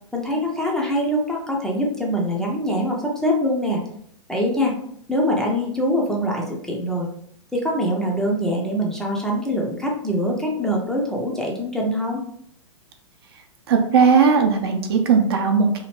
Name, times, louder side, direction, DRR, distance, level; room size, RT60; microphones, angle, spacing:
voice 1, 0.1-3.8 4.3-4.8 5.1-7.1 7.5-12.2, equal, 5° left, -2 dB, 0.5 m, -23 dB
voice 2, 13.7-15.8, right 5 dB, 50° right, 4 dB, 0.5 m, -17 dB
2.8 x 2.7 x 2.9 m, 0.67 s
figure-of-eight pair, 100°, 16 cm